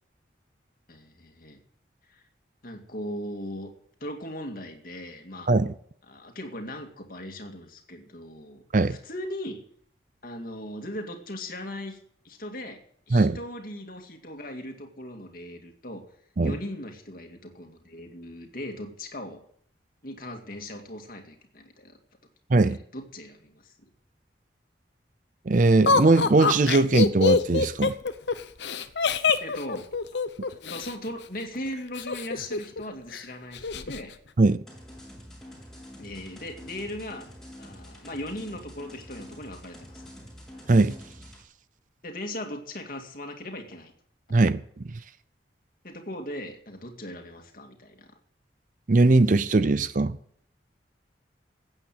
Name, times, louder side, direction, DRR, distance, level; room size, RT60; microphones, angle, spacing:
voice 1, 0.9-1.6 2.1-2.2 2.6-3.7 4.0-5.5 6.1-9.6 10.2-12.0 12.2-12.8 13.1-16.0 16.4-19.4 20.0-22.0 22.6-23.9 29.4-29.9 30.5-34.1 36.0-37.3 37.6-40.0 42.0-43.9 45.8-48.2, left 1 dB, 50° left, 2.2 m, -38 dB
voice 2, 25.5-27.9 34.4-34.6 40.7-40.9 44.3-45.0 48.9-50.2, right 3 dB, 45° right, 0.5 m, -20 dB
Laughter, 25.9-30.9 32.0-32.8 33.1-33.2 33.5-34.0, left 4 dB, 70° left, 0.8 m, -25 dB
sound 1, 34.7-41.4, equal, 5° left, 3.9 m, -46 dB
15.5 x 8.8 x 7.4 m
head